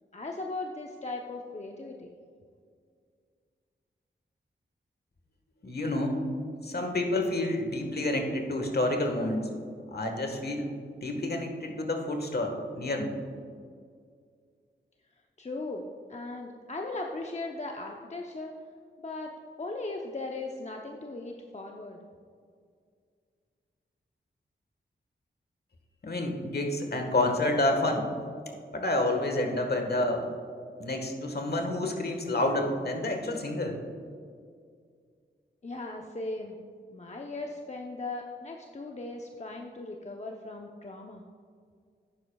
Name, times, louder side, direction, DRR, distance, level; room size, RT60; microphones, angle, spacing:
voice 1, 0.1-2.1 15.4-18.5 19.0-22.0 35.6-36.6 36.9-41.2, left 2 dB, 35° left, 1 dB, 0.8 m, -38 dB
voice 2, 5.6-6.2 6.6-9.5 9.9-10.7 11.0-13.1 26.0-28.1 28.7-30.3 30.8-33.8, left 1 dB, 50° left, 4 dB, 1.5 m, -29 dB
11.5 x 9.5 x 2.4 m, 2.2 s
cardioid pair, 40°, 20 cm